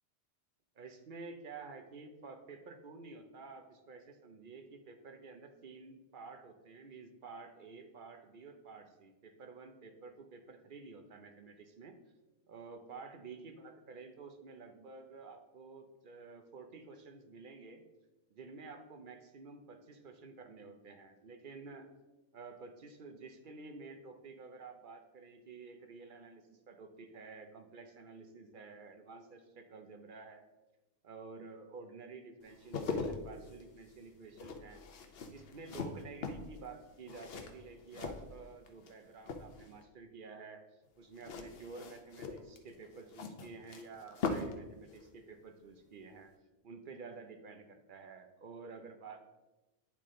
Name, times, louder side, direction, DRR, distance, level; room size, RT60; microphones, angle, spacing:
voice 1, 0.8-12.0 12.5-17.8 18.3-21.9 22.3-30.5 31.0-34.8 35.3-40.6 41.0-46.3 46.6-49.2, right 4 dB, 50° right, 6 dB, 0.8 m, -51 dB
sound 1, 32.4-38.9 39.2-39.8 41.1-44.6 44.9-45.1, left 4 dB, 60° left, 0.9 m, -41 dB
9.9 x 3.6 x 3.7 m, 1.1 s
omnidirectional pair, 1.2 m